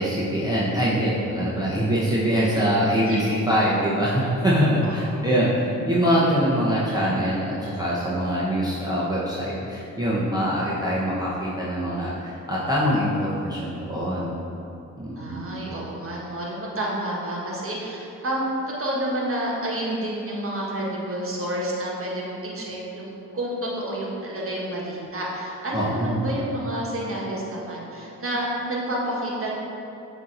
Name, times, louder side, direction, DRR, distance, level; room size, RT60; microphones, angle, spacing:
voice 1, 0.0-14.3 15.0-15.6 25.7-26.2, equal, 10° right, -8 dB, 0.8 m, -23 dB
voice 2, 15.1-18.5 18.8-29.5, right 1 dB, 40° right, -4 dB, 1.3 m, -29 dB
7.2 x 2.9 x 2.5 m, 2.8 s
supercardioid pair, 45°, 35 cm